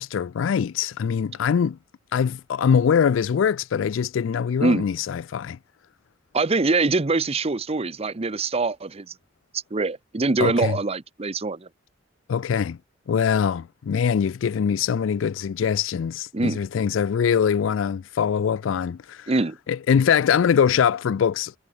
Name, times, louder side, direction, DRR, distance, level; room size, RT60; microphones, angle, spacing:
voice 1, 0.0-1.8 2.1-5.6 10.4-10.8 12.3-12.8 13.1-19.3 19.7-21.6, left 7 dB, 80° left, 0.4 m, -23 dB
voice 2, 6.3-9.1 9.7-11.7 16.3-16.6 19.3-19.6, right 3 dB, 30° right, 0.7 m, -23 dB
head